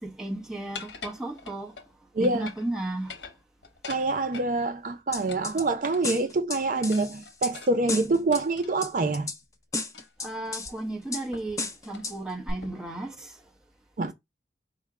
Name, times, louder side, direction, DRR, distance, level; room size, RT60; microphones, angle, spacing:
voice 1, 0.0-1.7 2.2-3.2 10.2-13.4, right 1 dB, 5° right, 0.9 m, -34 dB
sound 1, 0.7-1.9 2.2-2.7 3.0-4.5 5.3-6.3 6.9-9.1 9.9-10.3 10.6-10.7 11.3-11.6 11.9-12.1 12.6-13.0, left 5 dB, 80° left, 0.8 m, -44 dB
voice 2, 2.1-2.5 3.9-9.3 14.0-14.1, right 3 dB, 45° right, 0.4 m, -26 dB
sound 2, 5.1-5.6 6.0-7.5 7.9-8.4 8.8-9.4 9.7-10.7 11.1-11.2 11.6-12.2 12.5-12.6, left 3 dB, 20° left, 0.5 m, -33 dB
4.8 x 2.1 x 4.7 m
head